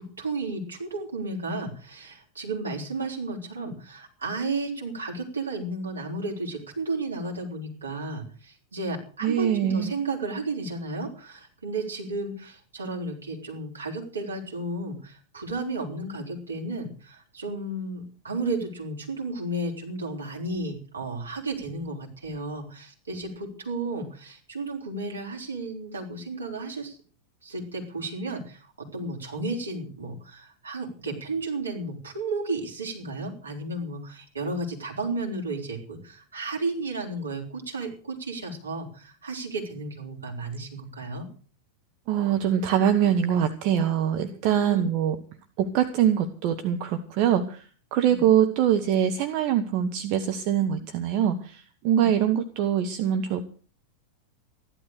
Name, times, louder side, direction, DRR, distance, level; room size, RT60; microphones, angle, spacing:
voice 1, 0.0-27.0 27.4-41.3 44.5-44.8 48.0-48.2 51.9-52.1, right 2 dB, 75° right, 1 dB, 4.6 m, -33 dB
voice 2, 9.2-9.9 42.1-45.2 45.6-47.6 47.9-53.4, right 9 dB, 45° right, 7 dB, 1.3 m, -23 dB
14.5 x 12.0 x 6.6 m, 0.41 s
figure-of-eight pair, 90°, 0 cm